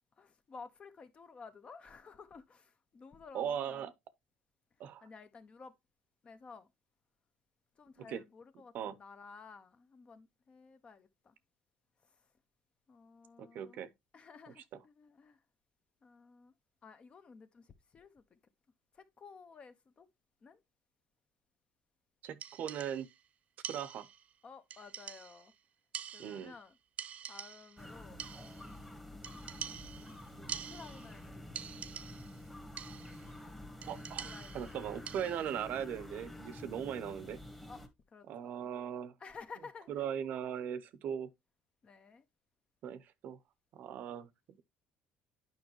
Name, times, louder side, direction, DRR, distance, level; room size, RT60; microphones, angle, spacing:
voice 1, 0.2-3.9 5.0-5.7 6.2-6.7 7.8-11.4 12.9-13.8 14.1-15.4 16.0-16.5 16.8-18.4 18.9-20.1 20.4-20.6 24.4-25.5 26.1-26.8 27.3-28.2 30.4-31.6 34.2-34.7 37.7-37.8 38.1-38.7 39.2-39.9 41.8-42.3, left 5 dB, 35° left, 1.0 m, -54 dB
voice 2, 3.3-3.9 4.8-5.0 8.0-8.2 8.7-9.0 13.4-13.9 14.6-14.8 22.2-23.1 23.7-24.1 26.2-26.5 33.9-34.3 34.5-37.4 38.3-39.1 39.9-41.3 42.8-43.4 43.7-44.3, right 9 dB, 60° right, 0.7 m, -39 dB
sound 1, 22.4-23.2 23.6-24.3 24.7-25.5 25.9-26.7 27.0-27.8 28.2-28.8 29.2-31.2 31.6-32.4 32.8-33.3 33.8-35.6, right 9 dB, 45° right, 0.3 m, -46 dB
sound 2, 27.8-37.9, left 1 dB, 5° left, 1.4 m, -49 dB
9.3 x 5.3 x 3.0 m
cardioid pair, 110°, 3 cm